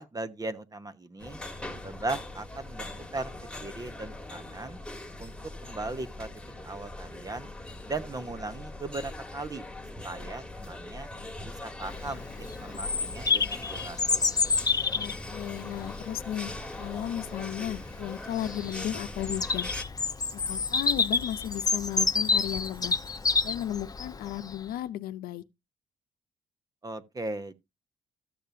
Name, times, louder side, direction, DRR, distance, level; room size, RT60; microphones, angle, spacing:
voice 1, 0.0-1.4 1.8-3.3 3.6-4.8 5.2-5.3 5.6-6.3 6.6-7.5 7.8-9.6 10.0-11.1 11.4-14.0 14.3-14.5 26.8-27.5, right 2 dB, 25° right, 1.1 m, -38 dB
sound 1, 1.2-19.8, left 2 dB, 5° left, 1.6 m, -41 dB
Bird vocalization bird call bird song, 11.8-24.5, left 4 dB, 25° left, 0.9 m, -29 dB
voice 2, 14.9-19.7 20.3-23.0 23.4-25.4, left 12 dB, 85° left, 0.7 m, -35 dB
sound 2, 20.2-23.8, right 7 dB, 90° right, 3.3 m, -53 dB
13.5 x 6.7 x 2.8 m
cardioid pair, 80°, 15 cm